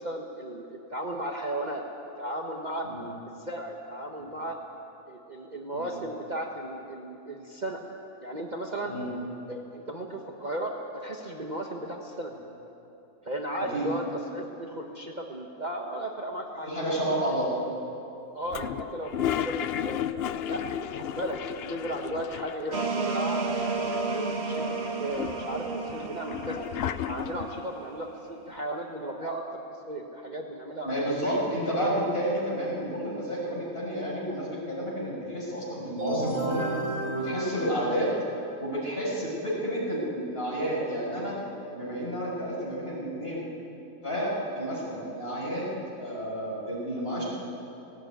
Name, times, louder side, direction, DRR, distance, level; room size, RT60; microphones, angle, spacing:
voice 1, 0.0-1.8 2.2-2.9 3.3-4.6 5.1-7.8 8.2-8.9 9.5-12.3 13.2-14.1 14.3-16.7 18.3-20.0 20.5-20.6 20.9-23.4 24.1-26.7 27.1-29.6 29.9-31.4, right 1 dB, 35° right, 1 dB, 1.3 m, -35 dB
voice 2, 13.6-13.9 16.7-17.5 30.8-36.7 37.1-38.1 38.6-41.4 41.7-43.5 44.0-45.7 46.0-47.2, equal, 40° left, -5 dB, 6.9 m, -30 dB
Toilet flush, 18.5-22.9 23.1-23.2 23.4-24.3 24.8-27.6, left 10 dB, 60° left, 0.7 m, -33 dB
sound 1, 22.7-28.2, right 3 dB, 50° right, 1.7 m, -32 dB
sound 2, 36.0-38.7, right 1 dB, 80° right, 6.0 m, -33 dB
18.0 x 17.5 x 9.4 m, 2.9 s
omnidirectional pair, 1.5 m